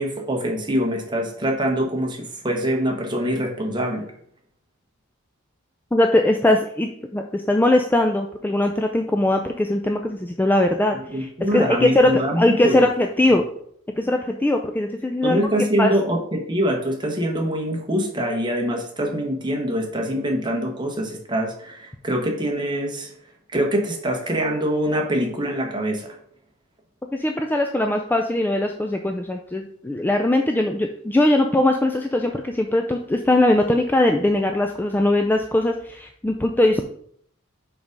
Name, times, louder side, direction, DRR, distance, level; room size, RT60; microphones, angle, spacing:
voice 1, 0.0-4.1 11.1-12.8 13.3-13.4 15.2-23.1 23.5-26.2, equal, 20° right, 1 dB, 1.2 m, -24 dB
voice 2, 5.9-13.4 14.0-15.4 15.8-15.9 27.1-36.8, left 1 dB, 10° left, 4 dB, 0.3 m, -20 dB
5.1 x 4.7 x 5.2 m, 0.67 s
head